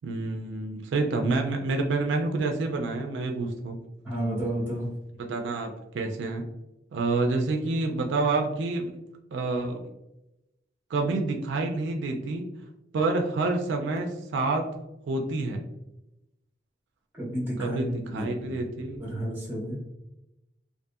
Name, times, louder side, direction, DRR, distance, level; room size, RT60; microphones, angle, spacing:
voice 1, 0.0-3.8 5.2-6.5 6.9-8.9 9.3-9.8 10.9-12.5 12.9-14.7 15.1-15.6 17.6-19.1, right 3 dB, 75° right, 3 dB, 0.3 m, -28 dB
voice 2, 4.0-4.9 17.1-17.8 18.1-18.6 19.0-19.8, right 1 dB, 10° right, -5 dB, 0.9 m, -31 dB
2.6 x 2.4 x 2.6 m, 0.92 s
head